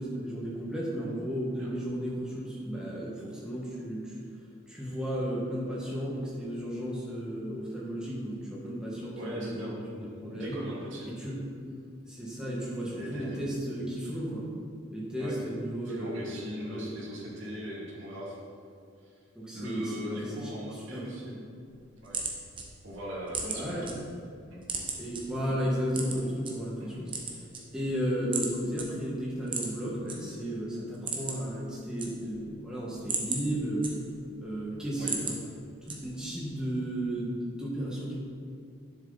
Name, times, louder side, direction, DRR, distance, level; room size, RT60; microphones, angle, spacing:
voice 1, 0.0-4.2 4.7-10.6 11.1-11.4 12.1-14.5 14.9-16.2 16.7-16.9 19.3-21.3 23.4-23.9 25.0-27.1 27.7-33.9 34.4-35.3 35.8-38.2, equal, 5° right, -6 dB, 1.9 m, -34 dB
voice 2, 9.2-10.0 10.3-11.1 12.9-13.3 15.2-15.4 15.8-18.4 19.0-19.1 19.5-21.4 22.0-22.2 22.8-24.0 24.5-24.6 26.8-27.0 35.0-35.2, equal, 65° right, -7 dB, 2.7 m, -39 dB
sound 1, 21.7-23.9 24.3-25.2 25.9-26.5 27.0-28.0 28.3-28.5 28.8-28.9 29.4-30.2 30.5-30.6 30.9-31.5 31.8-32.5 32.9-34.3 34.7-35.4 35.9-36.3, right 4 dB, 25° right, 1.1 m, -35 dB
10.5 x 7.6 x 4.2 m, 2.3 s
head